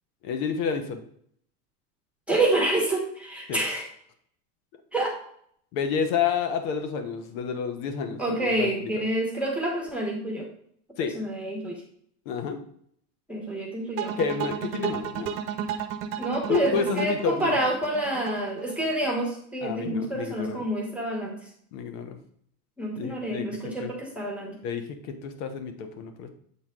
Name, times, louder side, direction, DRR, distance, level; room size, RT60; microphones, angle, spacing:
voice 1, 0.2-1.0 3.5-3.6 5.7-9.1 11.0-11.1 12.2-12.6 14.2-15.3 16.5-17.6 19.6-20.7 21.7-22.2 23.0-23.5 23.8-23.9 24.6-26.3, left 6 dB, 65° left, 7 dB, 1.3 m, -29 dB
voice 2, 2.3-3.8 4.9-5.1 8.2-10.5 11.1-11.8 13.3-14.2 16.2-21.4 22.8-24.6, right 1 dB, 5° right, -1 dB, 1.3 m, -28 dB
sound 1, 14.0-19.1, right 9 dB, 80° right, 1.0 m, -33 dB
8.0 x 4.0 x 3.8 m, 0.65 s
supercardioid pair, 130°, 45 cm